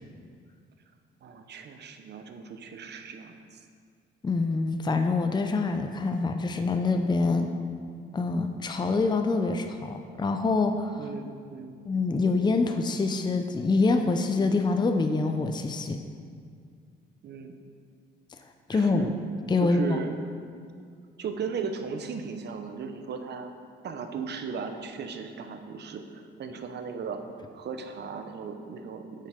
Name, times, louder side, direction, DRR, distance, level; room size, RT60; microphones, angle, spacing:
voice 1, 1.2-3.6 11.0-11.8 17.2-17.6 18.7-19.1 19.6-20.1 21.2-23.5 23.8-27.2 27.5-29.3, right 5 dB, 60° right, 7 dB, 0.8 m, -36 dB
voice 2, 4.2-7.5 8.1-11.1 11.9-16.0 18.7-19.1 19.5-20.0, left 3 dB, 20° left, 6 dB, 0.5 m, -25 dB
8.0 x 6.6 x 5.1 m, 2.1 s
cardioid pair, 90°, 20 cm